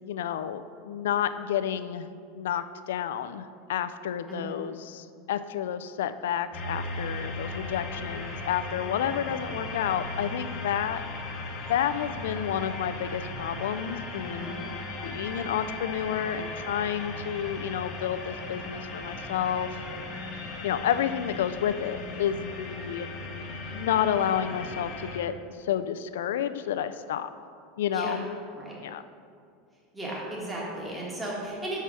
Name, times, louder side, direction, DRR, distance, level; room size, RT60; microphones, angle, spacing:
voice 1, 0.0-11.0 11.7-14.7 15.0-20.2 20.6-23.1 23.7-27.3 27.8-28.2 28.8-29.0, left 9 dB, 85° left, 11 dB, 0.3 m, -30 dB
voice 2, 4.3-4.6 14.3-14.6 27.9-28.2 28.6-28.7 29.9-31.8, right 1 dB, 15° right, -5 dB, 1.6 m, -35 dB
sound 1, 6.5-25.2, left 2 dB, 45° left, 1.0 m, -37 dB
5.5 x 4.7 x 6.1 m, 2.3 s
supercardioid pair, 120°, 0 cm